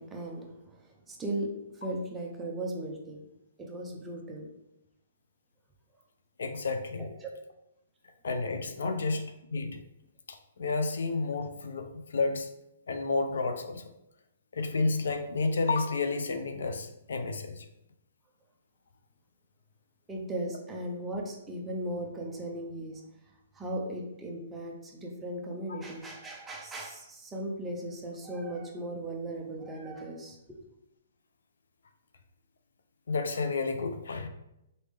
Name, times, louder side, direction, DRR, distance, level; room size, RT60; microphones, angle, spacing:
voice 1, 0.0-3.3 3.6-4.5 7.0-7.4 8.8-8.9 20.1-23.0 23.5-30.4, right 1 dB, 5° right, 0 dB, 0.5 m, -37 dB
voice 2, 6.4-7.1 8.2-9.2 9.5-9.8 10.3-12.5 12.9-13.8 14.5-17.7 33.1-34.3, left 3 dB, 75° left, 7 dB, 0.5 m, -31 dB
4.1 x 3.4 x 3.4 m, 0.86 s
hypercardioid pair, 170°, 0 cm